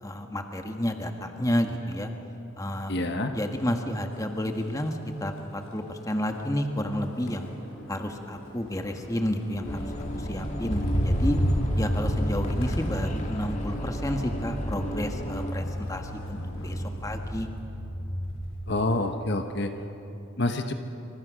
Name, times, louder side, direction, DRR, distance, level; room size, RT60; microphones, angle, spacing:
voice 1, 0.0-2.1 2.6-2.9 3.3-7.5 7.9-9.8 10.1-11.4 11.8-17.5, equal, 15° left, 4 dB, 1.5 m, -31 dB
voice 2, 2.9-3.3 18.7-19.7 20.4-20.7, left 2 dB, 50° left, 6 dB, 1.2 m, -27 dB
Motor vehicle (road), 3.5-3.8 4.1-18.6 19.0-19.4, equal, 75° left, 5.3 m, -32 dB
sound 1, 9.6-15.5, equal, 35° left, 1.8 m, -33 dB
28.0 x 26.0 x 6.3 m, 3.0 s
head